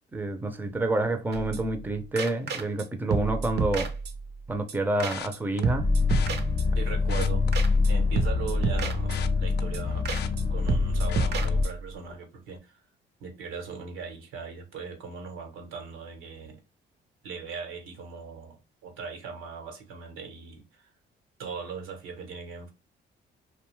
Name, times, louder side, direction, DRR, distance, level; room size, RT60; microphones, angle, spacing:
voice 1, 0.1-3.9 4.5-5.9, right 2 dB, 10° right, 0.5 m, -28 dB
sound 1, 1.3-1.9 2.2-2.8 3.1-4.4 4.7-4.8 5.0-5.4 5.6-6.9 7.2-7.3 7.5-7.9 8.2-9.4 9.7-9.8 10.0-10.4 10.7-11.9, right 4 dB, 55° right, 0.6 m, -30 dB
sound 2, 5.1-5.6 6.1-6.3 7.0-8.2 8.5-10.8 11.1-11.5 12.0-12.2 12.5-12.6, left 10 dB, 60° left, 0.4 m, -41 dB
sound 3, 5.8-11.7, left 4 dB, 35° left, 0.8 m, -25 dB
voice 2, 6.7-7.4 7.9-10.1 10.5-12.8 13.2-16.6 17.2-20.9 21.4-22.7, right 5 dB, 90° right, 1.0 m, -39 dB
2.6 x 2.2 x 3.0 m
cardioid pair, 90°, 20 cm